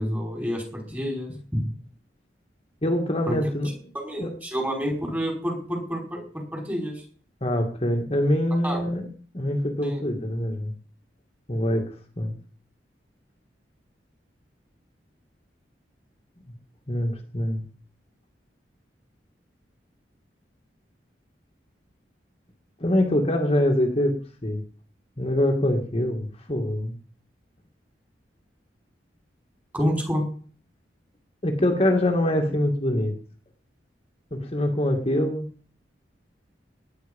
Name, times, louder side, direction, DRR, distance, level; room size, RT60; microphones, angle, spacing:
voice 1, 0.0-1.6 3.3-3.4 3.9-7.0 8.6-8.8 9.8-10.0 29.7-30.2, equal, 10° right, 1 dB, 5.2 m, -28 dB
voice 2, 2.8-4.3 7.4-9.1 9.3-10.7 11.5-12.3 16.9-17.6 22.8-24.6 25.2-26.9 31.4-33.1 34.3-35.5, left 1 dB, 35° left, 2 dB, 2.4 m, -24 dB
19.0 x 10.0 x 5.5 m, 0.43 s
head